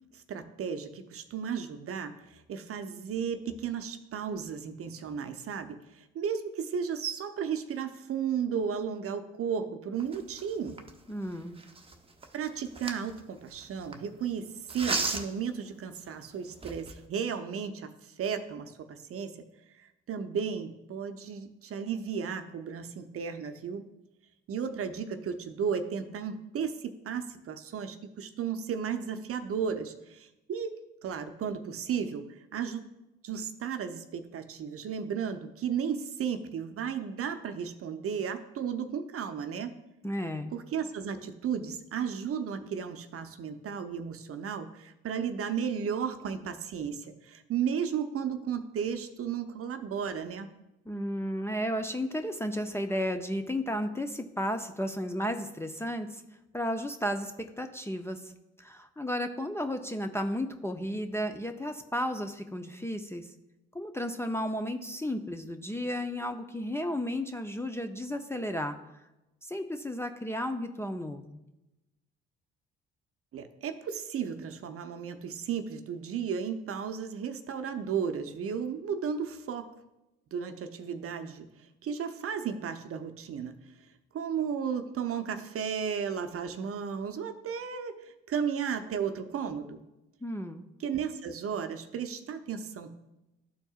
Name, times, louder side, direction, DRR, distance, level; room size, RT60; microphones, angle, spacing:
voice 1, 0.1-10.8 12.3-14.5 14.7-17.9 18.2-19.5 19.8-23.9 24.5-30.7 31.0-32.2 32.5-32.8 33.2-39.7 40.5-50.5 73.3-79.7 80.3-83.5 84.1-89.8 90.8-93.0, right 7 dB, 50° right, 8 dB, 0.7 m, -34 dB
sound 1, 10.0-14.0 14.7-15.5 16.1-16.2 16.5-17.1, right 3 dB, 20° right, 0.8 m, -36 dB
voice 2, 11.1-11.6 40.0-40.5 50.9-56.2 56.5-58.3 58.6-63.3 63.7-68.8 69.4-71.4 90.2-90.7, equal, 10° left, 6 dB, 0.5 m, -33 dB
12.5 x 4.4 x 2.4 m, 0.95 s
hypercardioid pair, 60°, 30 cm